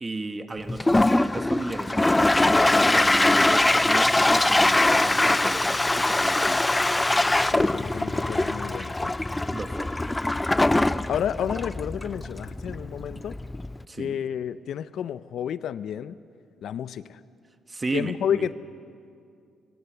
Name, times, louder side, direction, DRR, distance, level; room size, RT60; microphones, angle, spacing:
voice 1, 0.0-6.6 9.5-10.2 13.9-14.2 17.7-18.5, right 2 dB, 25° right, 8 dB, 1.2 m, -34 dB
Toilet flush, 0.7-13.8, left 2 dB, 15° left, 0.4 m, -22 dB
Bowed string instrument, 3.8-10.7, left 3 dB, 50° left, 5.1 m, -51 dB
voice 2, 7.5-9.1 11.1-13.4 14.0-16.2 16.6-17.2 17.9-18.5, left 9 dB, 70° left, 15 dB, 0.5 m, -30 dB
25.0 x 16.0 x 6.8 m, 2.4 s
cardioid pair, 90°, 0 cm